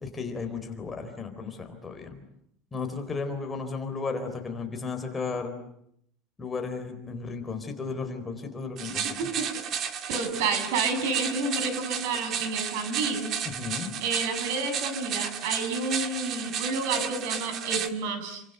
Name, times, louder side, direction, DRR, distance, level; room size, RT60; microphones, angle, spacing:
voice 1, 0.0-2.2 2.7-5.5 6.4-9.2 13.4-13.9, left 4 dB, 15° left, 5 dB, 4.0 m, -34 dB
sound 1, 8.8-17.9, right 8 dB, 40° right, 2.2 m, -33 dB
voice 2, 10.1-13.3 14.0-18.4, right 4 dB, 75° right, 9 dB, 7.5 m, -30 dB
29.5 x 25.0 x 8.0 m, 0.73 s
cardioid pair, 160°, 0 cm